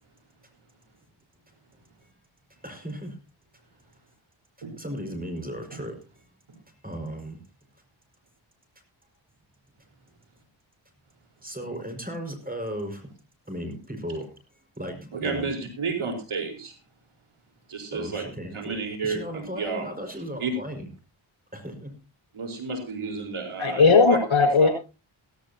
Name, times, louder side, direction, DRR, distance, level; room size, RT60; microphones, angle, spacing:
voice 1, 2.6-3.2 4.8-6.0 6.8-7.4 11.4-13.1 13.5-14.3 14.8-15.5 17.9-20.9 21.5-21.9, equal, 15° right, 5 dB, 5.6 m, -36 dB
voice 2, 15.1-16.8 17.7-18.2 18.5-19.9 20.4-20.5 22.3-24.2 24.6-24.7, right 4 dB, 75° right, 4 dB, 4.6 m, -31 dB
voice 3, 23.6-24.7, left 4 dB, 65° left, 4 dB, 6.3 m, -17 dB
16.5 x 15.5 x 2.9 m, 0.30 s
cardioid pair, 55°, 50 cm